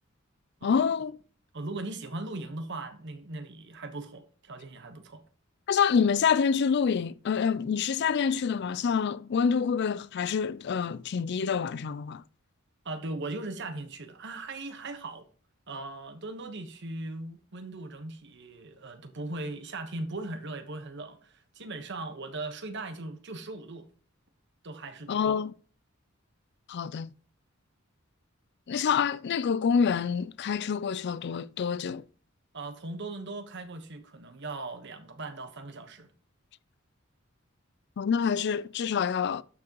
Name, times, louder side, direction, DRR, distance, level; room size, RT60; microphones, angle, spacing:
voice 1, 0.6-1.2 5.7-12.2 25.1-25.5 26.7-27.1 28.7-32.0 38.0-39.4, left 6 dB, 55° left, 0.4 m, -27 dB
voice 2, 1.5-5.2 12.8-15.3 15.7-23.9 24.6-25.4 32.5-36.1, right 2 dB, 60° right, 1.2 m, -39 dB
12.5 x 6.2 x 3.0 m
head